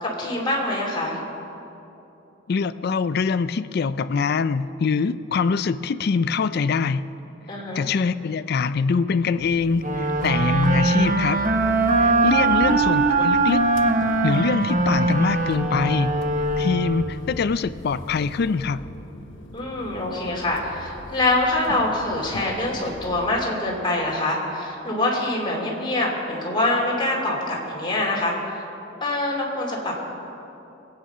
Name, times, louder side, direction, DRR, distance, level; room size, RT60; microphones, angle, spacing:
voice 1, 0.0-1.2 7.5-7.8 12.4-12.6 19.5-28.6 29.0-30.0, left 2 dB, 25° left, -3 dB, 2.8 m, -25 dB
voice 2, 2.5-7.0 7.7-11.4 12.0-13.7 14.2-16.2 16.6-18.8, left 5 dB, 55° left, 14 dB, 0.4 m, -23 dB
sound 1, 9.4-23.3, left 1 dB, 85° left, 1.0 m, -39 dB
sound 2, 9.8-17.3, right 3 dB, 45° right, 1.0 m, -21 dB
22.0 x 9.0 x 5.5 m, 2.9 s
head